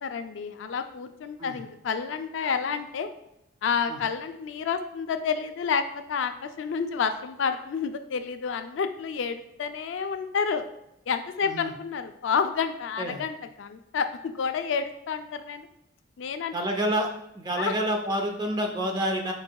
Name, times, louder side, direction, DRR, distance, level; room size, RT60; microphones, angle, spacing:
voice 1, 0.0-3.1 3.6-5.8 6.1-10.6 11.1-15.7 16.2-16.6 17.6-17.7, left 6 dB, 65° left, 8 dB, 0.3 m, -29 dB
voice 2, 16.5-17.1 17.3-19.3, equal, 20° right, 3 dB, 0.5 m, -28 dB
4.5 x 4.5 x 2.2 m, 0.83 s
head